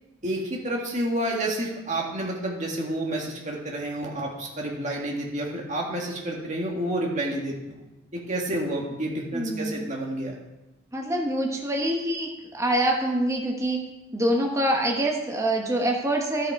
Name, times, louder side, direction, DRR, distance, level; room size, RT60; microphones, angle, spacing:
voice 1, 0.2-7.9 8.1-10.4, right 1 dB, 35° right, -1 dB, 1.9 m, -29 dB
voice 2, 9.3-9.8 10.9-13.8 14.1-16.5, right 1 dB, 15° right, 0 dB, 1.1 m, -25 dB
12.0 x 6.6 x 4.7 m, 1.0 s
head